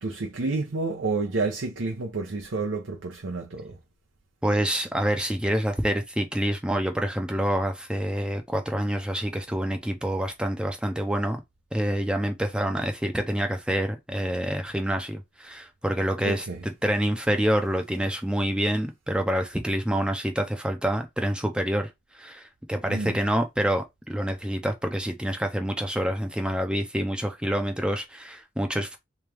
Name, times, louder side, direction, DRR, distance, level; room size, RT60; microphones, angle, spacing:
voice 1, 0.0-3.8 16.2-16.6 22.9-23.2, right 3 dB, 75° right, 0.7 m, -29 dB
voice 2, 4.4-11.4 11.7-21.9 22.2-29.0, equal, 5° right, 0.5 m, -27 dB
3.5 x 3.2 x 3.4 m
head